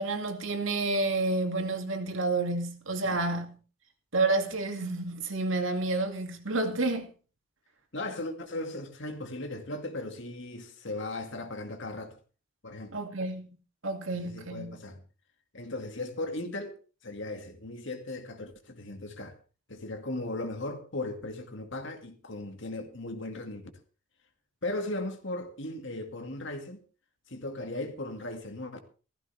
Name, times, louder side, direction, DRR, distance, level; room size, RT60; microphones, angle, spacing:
voice 1, 0.0-3.6 4.1-7.1 12.9-13.5 13.8-14.8, right 2 dB, 70° right, 2.3 m, -29 dB
voice 2, 7.9-12.2 12.6-12.9 14.1-15.0 15.5-16.8 17.0-19.4 19.7-23.7 24.6-26.8 27.3-28.8, left 2 dB, 60° left, 2.2 m, -37 dB
15.5 x 14.5 x 3.4 m
head